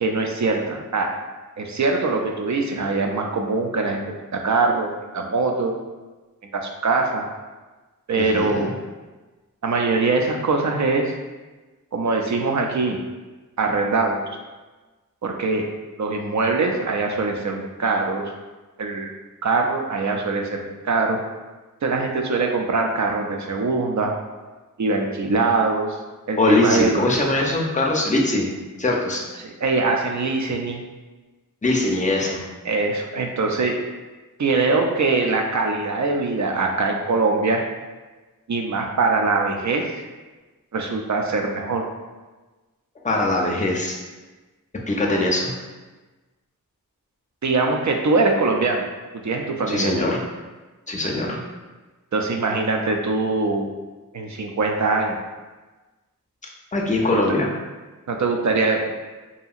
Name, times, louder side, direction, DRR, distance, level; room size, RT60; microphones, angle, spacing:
voice 1, 0.0-1.1 1.6-4.0 4.3-5.7 6.5-7.3 8.1-8.8 9.6-11.1 11.9-13.0 13.6-14.2 15.2-15.7 16.0-18.3 18.8-19.1 19.4-21.2 21.8-24.2 24.8-26.0 26.3-27.1 29.4-30.8 32.7-33.9 34.4-37.6 38.5-40.0 40.7-41.8 47.4-48.9 49.1-50.1 52.1-53.7 54.1-55.2 57.1-57.2 58.1-58.9, right 3 dB, 55° right, 2 dB, 0.4 m, -22 dB
voice 2, 8.2-8.7 26.4-28.5 28.8-29.2 31.6-32.4 43.0-44.0 44.9-45.5 49.7-50.2 50.9-51.4 56.7-57.5, left 2 dB, 20° left, -1 dB, 0.5 m, -21 dB
2.7 x 2.7 x 2.4 m, 1.2 s
wide cardioid pair, 50°, 34 cm